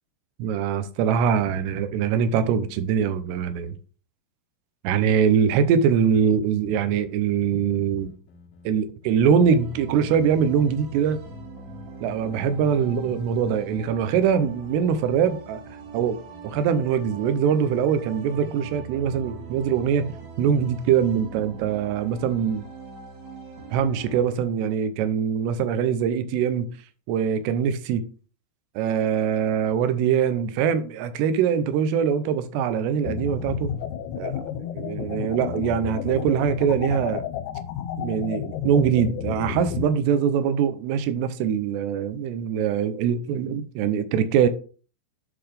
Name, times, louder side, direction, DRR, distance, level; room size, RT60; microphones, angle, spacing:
voice 1, 0.4-3.8 4.8-8.1 8.7-11.2 12.0-15.6 15.9-16.2 16.4-20.1 20.4-22.6 23.7-26.7 27.1-28.1 28.8-33.7 34.2-34.4 34.7-37.3 38.0-44.5, right 7 dB, 80° right, 2.7 m, -23 dB
sound 1, 6.6-10.7 11.0-12.8 13.0-18.7 19.0-19.5, left 6 dB, 60° left, 2.5 m, -46 dB
sound 2, 9.4-24.2, right 5 dB, 55° right, 2.2 m, -42 dB
sound 3, 33.0-39.9, left 10 dB, 85° left, 2.9 m, -31 dB
11.0 x 3.9 x 3.3 m
omnidirectional pair, 5.0 m